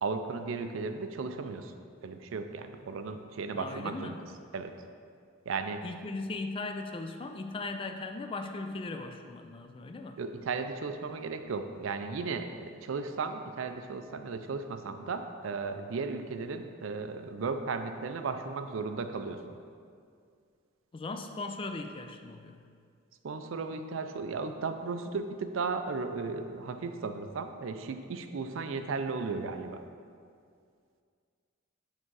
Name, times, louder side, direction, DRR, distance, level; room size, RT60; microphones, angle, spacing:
voice 1, 0.0-1.7 2.0-4.2 4.5-4.7 5.5-5.8 10.2-19.5 23.2-29.8, right 4 dB, 70° right, 8 dB, 0.4 m, -35 dB
voice 2, 3.5-4.3 5.8-10.2 20.9-22.6, left 3 dB, 25° left, 6 dB, 0.3 m, -38 dB
6.6 x 3.6 x 4.6 m, 2.2 s
head